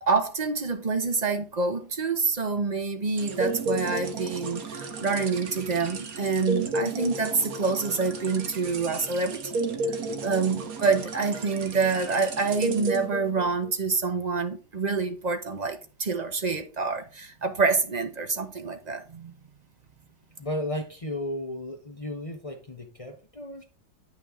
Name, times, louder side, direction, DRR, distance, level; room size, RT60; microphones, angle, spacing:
voice 1, 0.0-9.4 9.9-19.3, right 4 dB, 30° right, 0.9 m, -27 dB
sound 1, 3.2-13.7, right 3 dB, 60° right, 1.6 m, -33 dB
voice 2, 20.4-23.6, left 1 dB, 25° left, 0.9 m, -34 dB
8.9 x 6.3 x 3.7 m
omnidirectional pair, 1.8 m